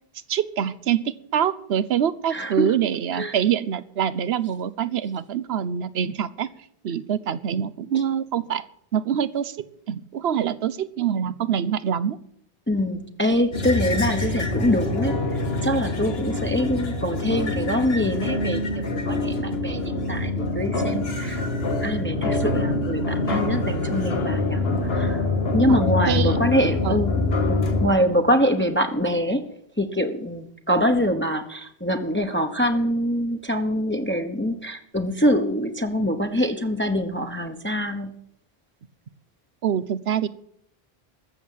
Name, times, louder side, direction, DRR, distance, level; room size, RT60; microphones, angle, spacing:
voice 1, 0.3-6.5 6.8-8.7 8.9-12.2 25.7-25.8 26.1-26.4 26.8-27.0 39.6-40.3, right 9 dB, 75° right, 16 dB, 1.0 m, -25 dB
voice 2, 2.3-2.8 3.1-3.3 7.9-8.0 12.7-25.2 25.5-27.1 27.5-29.4 29.8-38.1, equal, 10° left, 5 dB, 1.0 m, -24 dB
sound 1, 13.5-27.9, left 2 dB, 70° left, 1.7 m, -25 dB
14.0 x 7.2 x 9.2 m, 0.70 s
omnidirectional pair, 1.1 m